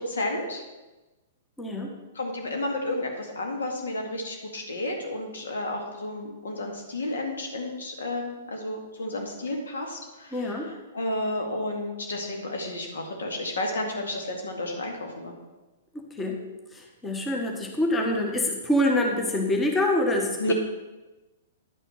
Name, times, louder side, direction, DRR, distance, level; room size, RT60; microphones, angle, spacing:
voice 1, 0.1-0.6 2.2-10.5 10.9-15.3 20.4-20.5, left 1 dB, 70° left, 2 dB, 2.0 m, -31 dB
voice 2, 1.6-1.9 10.3-10.7 15.9-16.4 16.7-20.5, left 1 dB, 15° left, 1 dB, 1.4 m, -26 dB
10.5 x 6.0 x 5.7 m, 1.1 s
figure-of-eight pair, 110°, 0 cm